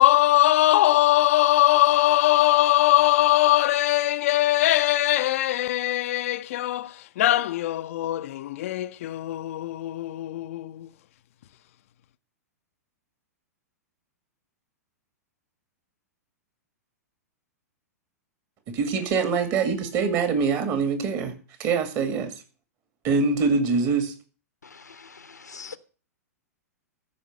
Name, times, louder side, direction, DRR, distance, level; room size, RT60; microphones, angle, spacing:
voice 1, 0.0-10.9, left 15 dB, 55° left, 0.5 m, -21 dB
voice 2, 18.7-21.3 21.6-22.3 23.0-24.1, right 5 dB, 35° right, 2.3 m, -24 dB
voice 3, 24.6-25.8, left 5 dB, 85° left, 1.0 m, -43 dB
14.0 x 5.2 x 7.5 m
figure-of-eight pair, 105°, 9 cm